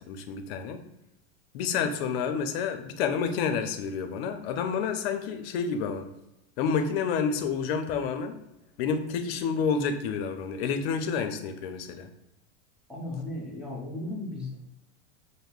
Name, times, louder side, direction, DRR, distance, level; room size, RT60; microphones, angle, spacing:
voice 1, 0.1-0.8 1.5-6.1 6.6-8.4 8.8-12.1, left 6 dB, 70° left, 8 dB, 0.6 m, -29 dB
voice 2, 12.9-14.6, left 2 dB, 5° right, -4 dB, 0.8 m, -36 dB
5.2 x 2.1 x 2.3 m, 0.88 s
supercardioid pair, 125°, 32 cm